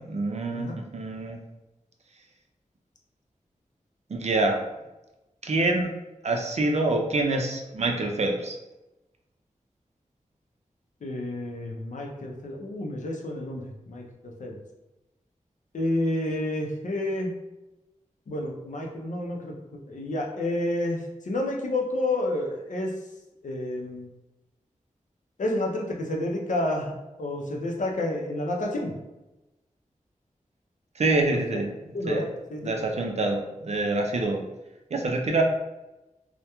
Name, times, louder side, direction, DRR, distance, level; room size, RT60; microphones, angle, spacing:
voice 1, 0.0-1.4 4.1-4.6 5.4-5.9 6.2-8.6 30.9-31.7 32.1-32.2 32.6-34.4 34.9-35.4, right 2 dB, 55° right, 2 dB, 0.4 m, -26 dB
voice 2, 11.0-14.6 15.7-17.3 18.3-23.0 23.4-24.1 25.4-28.9 31.5-31.6 31.9-32.2 32.5-32.7, left 1 dB, 70° left, 0 dB, 0.5 m, -30 dB
2.2 x 2.1 x 2.8 m, 1.0 s
wide cardioid pair, 90°, 13 cm